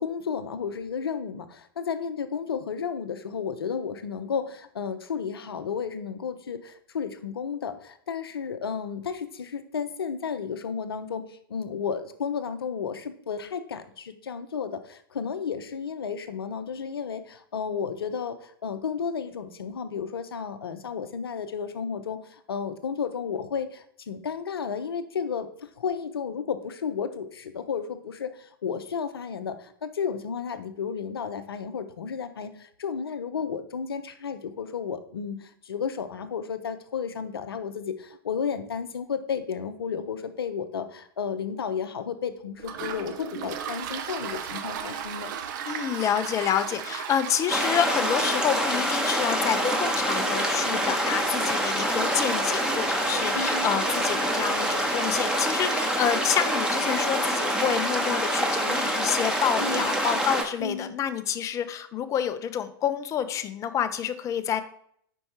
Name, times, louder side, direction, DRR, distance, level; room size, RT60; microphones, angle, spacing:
voice 1, 0.0-45.3 53.3-53.7 59.6-59.9 60.6-60.9, left 6 dB, 75° left, 10 dB, 0.6 m, -33 dB
Toilet flush, 42.6-56.0, right 8 dB, 50° right, 0.6 m, -38 dB
voice 2, 45.7-64.6, left 9 dB, 25° left, 11 dB, 0.5 m, -28 dB
sound 1, 47.5-60.4, right 1 dB, 5° right, 0.9 m, -26 dB
sound 2, 49.5-55.2, right 2 dB, 75° right, 1.5 m, -38 dB
5.3 x 4.5 x 4.3 m, 0.66 s
figure-of-eight pair, 100°, 13 cm